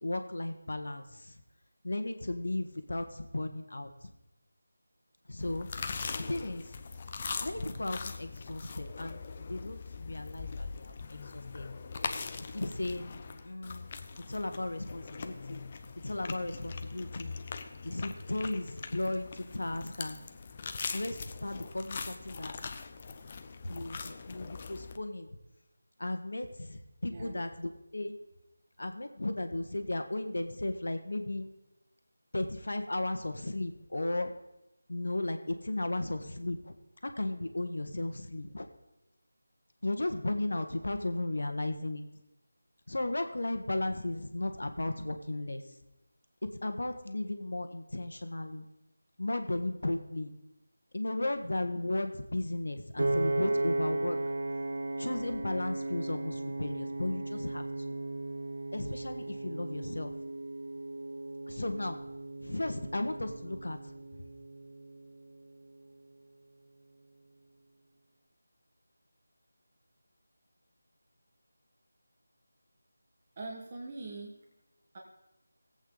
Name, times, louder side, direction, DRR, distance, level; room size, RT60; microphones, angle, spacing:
voice 1, 0.0-1.3 1.8-3.9 5.3-6.0 6.3-6.6 7.4-11.7 12.4-13.9 14.3-15.6 16.0-17.3 17.8-20.2 20.9-22.5 23.6-25.4 26.0-28.2 28.8-31.5 32.3-34.3 34.9-36.7 37.0-38.7 39.8-42.0 42.9-45.6 46.4-48.6 49.2-50.3 50.9-54.2 55.0-57.9 58.7-60.1 61.5-62.0 62.4-63.8, left 2 dB, 70° left, 7 dB, 1.3 m, -35 dB
sound 1, 5.4-25.0, left 4 dB, 30° left, 0.6 m, -41 dB
voice 2, 27.1-27.5 73.4-74.3 74.9-75.0, right 2 dB, 30° right, -2 dB, 1.4 m, -42 dB
Piano, 53.0-65.2, right 2 dB, 65° right, 0.7 m, -36 dB
17.5 x 8.2 x 3.9 m, 0.94 s
figure-of-eight pair, 165°, 0 cm